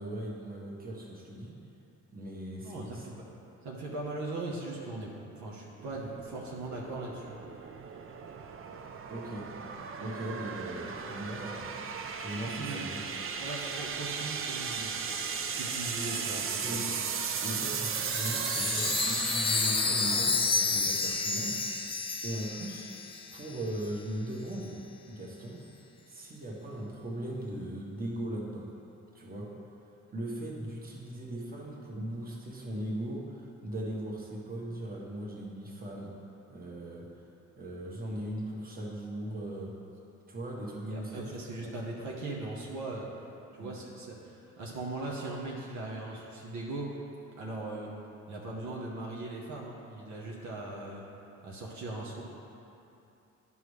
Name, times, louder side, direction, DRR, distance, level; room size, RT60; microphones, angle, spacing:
voice 1, 0.0-1.6 2.1-3.2 9.1-9.5 10.0-13.0 16.6-16.9 17.4-21.6 22.2-22.9 23.3-24.8 25.1-25.6 26.1-28.7 29.1-29.5 30.1-36.1 36.5-37.2 37.6-39.8 40.3-41.3 41.6-41.7 43.6-43.7, right 1 dB, 30° right, -3 dB, 1.5 m, -39 dB
voice 2, 2.6-3.1 3.6-7.4 12.5-12.9 13.4-15.1 15.5-16.8 40.8-43.1 43.5-46.9 47.4-47.9 48.3-51.0 51.4-52.2, right 2 dB, 70° right, -3 dB, 1.1 m, -39 dB
sound 1, 5.8-21.2, right 6 dB, 45° right, 0.6 m, -36 dB
Chime, 18.0-23.6, left 4 dB, 15° left, 0.5 m, -30 dB
11.0 x 5.5 x 3.3 m, 2.8 s
cardioid pair, 90°, 30 cm